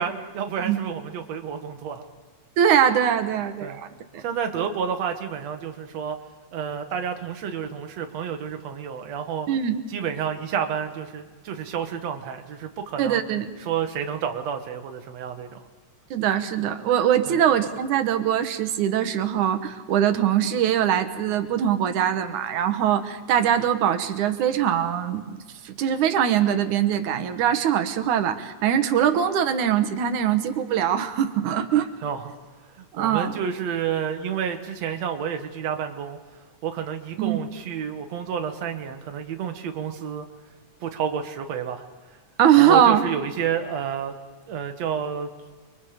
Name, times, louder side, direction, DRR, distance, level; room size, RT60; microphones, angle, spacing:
voice 1, 0.0-2.0 3.6-3.8 4.2-6.2 6.5-9.5 9.9-13.2 13.6-15.6 17.3-17.4 32.0-32.3 32.6-36.2 36.6-40.3 40.8-42.2 42.6-44.2 44.5-45.3, right 8 dB, 65° right, 6 dB, 2.7 m, -30 dB
voice 2, 2.6-3.9 4.1-4.2 9.5-9.8 13.0-13.5 16.1-25.4 25.6-31.9 32.9-33.3 37.2-37.4 42.4-43.0, right 9 dB, 85° right, 9 dB, 2.7 m, -22 dB
30.0 x 23.0 x 5.1 m, 1.4 s
omnidirectional pair, 3.4 m